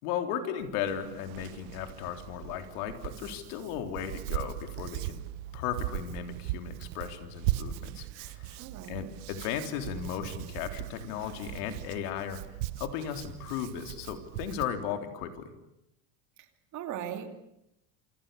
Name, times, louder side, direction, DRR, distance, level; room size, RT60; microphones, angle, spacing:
voice 1, 0.0-5.2 5.5-8.6 8.9-12.4 12.8-15.5, left 9 dB, 80° left, 6 dB, 3.7 m, -36 dB
Hands, 0.6-14.6, right 15 dB, 75° right, 1.3 m, -39 dB
voice 2, 8.6-9.0 16.7-17.4, right 9 dB, 40° right, 6 dB, 2.8 m, -38 dB
27.5 x 26.5 x 6.9 m, 0.85 s
cardioid pair, 170°, 44 cm